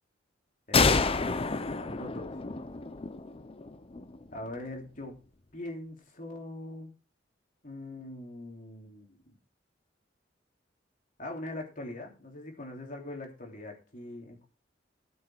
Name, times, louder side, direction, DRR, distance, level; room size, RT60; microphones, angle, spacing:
sound 1, 0.7-4.3, left 4 dB, 30° left, 0.7 m, -28 dB
voice 1, 1.6-2.3 4.3-5.1 5.5-6.9 7.6-9.4 11.2-14.5, left 1 dB, 45° left, 1 dB, 3.2 m, -42 dB
14.0 x 6.5 x 4.6 m, 0.35 s
head